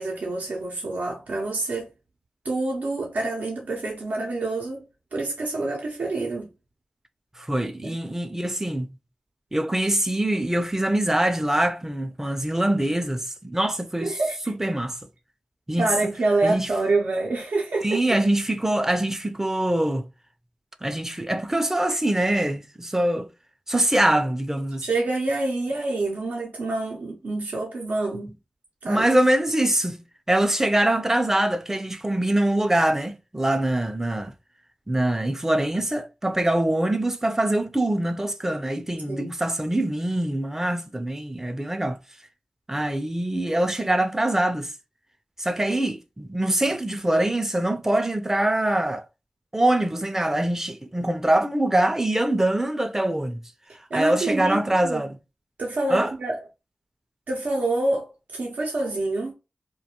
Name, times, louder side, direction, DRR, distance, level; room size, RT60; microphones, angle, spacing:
voice 1, 0.0-1.9 2.4-4.8 5.1-6.5 7.8-8.0 14.0-14.4 15.8-18.0 24.8-28.3 28.8-29.1 39.1-39.3 53.9-54.6 54.9-55.0 55.6-56.4 57.3-59.3, right 2 dB, 85° right, 0.6 m, -27 dB
voice 2, 7.4-8.9 9.5-14.2 14.6-15.0 15.7-16.1 16.4-16.7 17.8-20.1 20.8-23.3 23.7-24.9 28.9-30.0 30.3-34.3 34.9-42.0 42.7-44.7 45.4-49.1 49.5-53.4 53.9-55.2 55.9-56.1, right 1 dB, 15° right, 0.4 m, -24 dB
2.3 x 2.2 x 2.8 m
cardioid pair, 45°, 3 cm